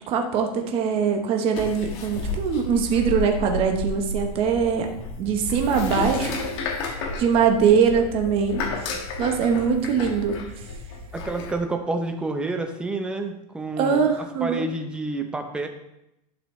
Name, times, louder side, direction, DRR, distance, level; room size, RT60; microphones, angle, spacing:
voice 1, 0.0-4.9 5.2-6.4 7.2-8.6 9.2-10.4 13.8-14.7, right 6 dB, 30° right, 3 dB, 1.0 m, -22 dB
sound 1, 1.5-11.5, left 3 dB, 45° left, 1.5 m, -32 dB
voice 2, 11.1-15.7, right 2 dB, 5° right, 5 dB, 0.6 m, -29 dB
11.5 x 6.0 x 3.1 m, 0.85 s
supercardioid pair, 165°, 20 cm